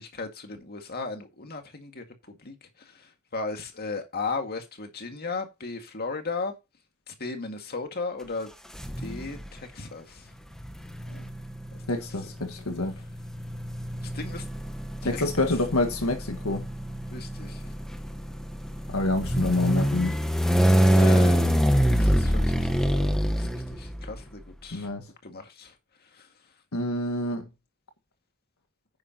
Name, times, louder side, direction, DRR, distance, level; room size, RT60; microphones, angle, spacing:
voice 1, 0.0-6.6 7.1-8.5 9.0-10.3 11.1-11.4 11.7-12.0 14.0-14.4 15.1-15.5 17.1-17.7 21.0-21.4 21.9-24.9 25.2-25.7 26.1-26.3, left 3 dB, 50° left, 2.0 m, -36 dB
sound 1, 8.8-9.5 10.5-24.2, equal, 5° left, 1.2 m, -25 dB
voice 2, 11.9-12.9 15.1-16.6 18.9-20.2 24.7-25.1 26.7-27.5, left 2 dB, 80° left, 1.6 m, -27 dB
9.8 x 9.7 x 2.9 m
head